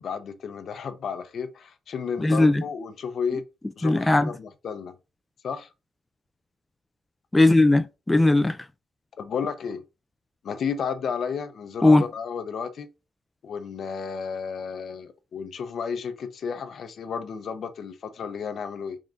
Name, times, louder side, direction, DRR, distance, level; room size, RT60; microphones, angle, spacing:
voice 1, 0.0-3.4 3.8-4.9 5.4-5.7 9.2-9.8 10.4-12.9 13.4-19.0, left 6 dB, 65° left, 0.7 m, -32 dB
voice 2, 2.2-2.6 3.8-4.3 7.3-8.6 11.8-12.1, left 2 dB, 15° left, 0.4 m, -18 dB
3.8 x 3.7 x 3.7 m
cardioid pair, 80°, 0 cm